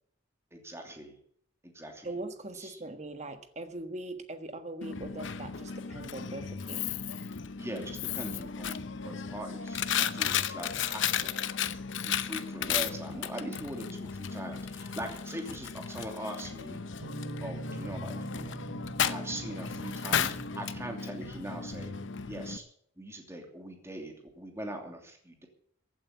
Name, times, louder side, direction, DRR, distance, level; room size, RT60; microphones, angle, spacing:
voice 1, 0.5-1.2 1.6-2.1 2.5-2.8 7.6-11.3 12.0-16.8 17.4-18.6 19.0-21.9 22.3-22.6 23.0-25.5, right 1 dB, 15° right, 3 dB, 2.8 m, -41 dB
voice 2, 2.0-6.9, right 2 dB, 35° right, 8 dB, 1.5 m, -41 dB
Coin (dropping), 4.8-22.6, left 8 dB, 70° left, 0.8 m, -34 dB
Guitar, 17.0-22.3, right 2 dB, 75° right, 4.3 m, -43 dB
15.5 x 8.7 x 8.3 m, 0.67 s
head